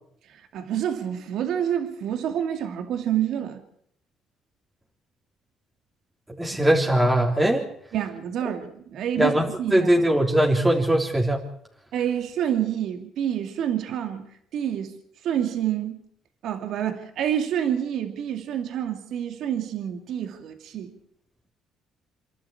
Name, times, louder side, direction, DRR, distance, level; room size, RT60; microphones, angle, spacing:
voice 1, 0.3-3.6 7.9-9.9 11.9-14.3 14.5-15.0 15.2-16.0 16.4-20.9, right 10 dB, 70° right, 2.4 m, -28 dB
voice 2, 6.4-7.7 9.2-11.4, right 1 dB, 10° right, 3.4 m, -21 dB
28.0 x 11.5 x 8.7 m
cardioid pair, 100°, 0 cm